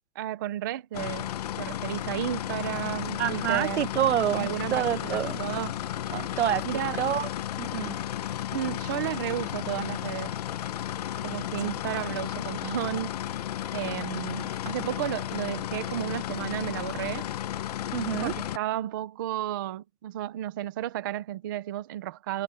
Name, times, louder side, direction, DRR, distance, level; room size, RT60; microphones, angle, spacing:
voice 1, 0.2-1.3 1.6-3.9 4.3-5.8 6.6-7.0 8.5-10.3 11.2-13.1 13.7-17.3 18.2-22.4, right 12 dB, 15° right, 0.5 m, -33 dB
sound 1, 0.9-18.6, left 12 dB, 30° left, 0.6 m, -33 dB
voice 2, 3.2-5.4 6.1-6.6 7.0-7.3 7.6-7.9 17.9-18.3, right 11 dB, 60° right, 1.0 m, -27 dB
hypercardioid pair, 165°, 39 cm